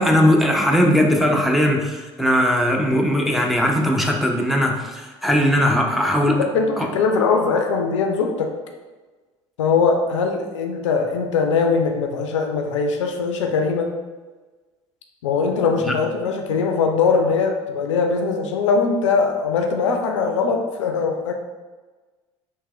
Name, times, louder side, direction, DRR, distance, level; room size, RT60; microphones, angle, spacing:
voice 1, 0.0-6.4 6.8-6.9 15.8-16.0, equal, ahead, 0 dB, 0.5 m, -19 dB
voice 2, 6.4-8.5 9.6-13.9 15.2-21.3, left 5 dB, 75° left, 4 dB, 0.4 m, -21 dB
3.4 x 2.9 x 3.0 m, 1.3 s
figure-of-eight pair, 60°, 16 cm